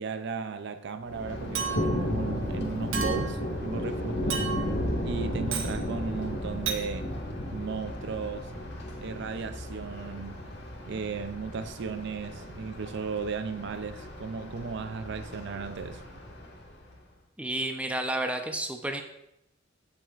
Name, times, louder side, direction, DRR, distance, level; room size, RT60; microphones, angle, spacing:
voice 1, 0.0-4.5 5.0-7.1 7.5-8.5 9.0-10.4 10.9-16.0, right 5 dB, 60° right, 0.5 m, -35 dB
Thunder, 1.0-17.0, left 1 dB, 60° left, 1.8 m, -34 dB
Chink clink, 1.6-2.1 2.9-3.4 4.3-4.8 5.5-5.8 6.7-6.9, right 7 dB, 75° right, 1.1 m, -32 dB
voice 2, 17.4-19.0, right 1 dB, 5° right, 0.7 m, -31 dB
15.0 x 6.1 x 2.5 m
head